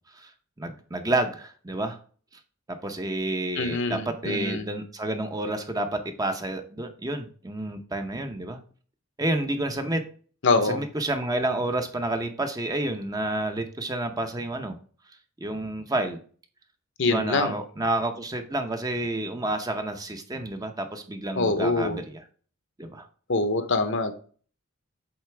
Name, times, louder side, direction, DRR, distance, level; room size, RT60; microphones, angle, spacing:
voice 1, 0.6-2.0 2.7-8.6 9.2-10.0 10.7-14.8 15.4-16.2 17.0-22.2 22.8-23.1, right 1 dB, 15° right, 6 dB, 0.7 m, -29 dB
voice 2, 3.6-4.7 10.4-10.8 17.0-17.6 21.4-22.0 23.3-24.1, left 3 dB, 60° left, 9 dB, 0.9 m, -25 dB
8.0 x 4.0 x 3.4 m, 0.42 s
head